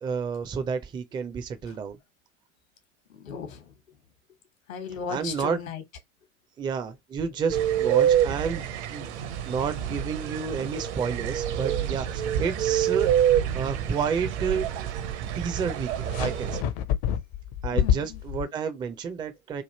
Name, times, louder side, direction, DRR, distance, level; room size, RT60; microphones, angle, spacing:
voice 1, 0.0-2.0 5.1-5.6 6.6-9.2 9.5-13.1 13.5-14.7 15.4-16.6 17.6-19.6, right 6 dB, 10° right, 0.4 m, -30 dB
voice 2, 3.1-3.7 4.7-5.8 17.7-18.2, left 6 dB, 70° left, 1.2 m, -36 dB
sound 1, 7.5-16.6, right 10 dB, 55° right, 0.7 m, -27 dB
sound 2, 16.1-18.5, left 9 dB, 40° left, 0.6 m, -27 dB
3.2 x 2.4 x 4.0 m
figure-of-eight pair, 90°, 41 cm